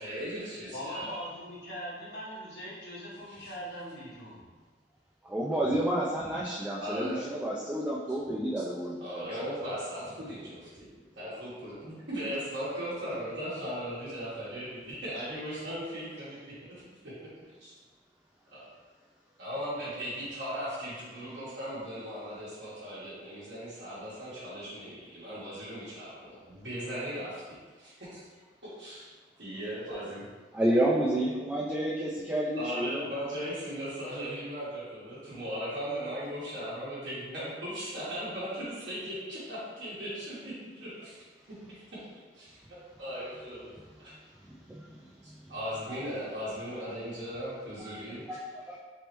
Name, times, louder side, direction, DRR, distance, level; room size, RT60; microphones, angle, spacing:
voice 1, 0.0-1.1 3.3-3.5 6.8-7.2 8.1-8.2 9.0-10.9 11.2-16.4 16.7-17.1 17.6-17.7 18.5-18.6 19.4-27.4 27.8-28.2 28.8-29.1 29.4-30.3 32.6-41.2 41.7-41.8 42.1-42.6 43.0-43.7 44.0-44.1 45.5-48.2, equal, 75° right, -11 dB, 1.1 m, -38 dB
voice 2, 0.7-4.4, equal, 65° left, -8 dB, 1.1 m, -41 dB
voice 3, 5.2-9.3 30.5-33.1 44.7-45.0 45.3-45.4 47.8-47.9 48.3-48.8, right 1 dB, 10° right, -6 dB, 0.3 m, -30 dB
3.4 x 3.1 x 3.0 m, 1.4 s
head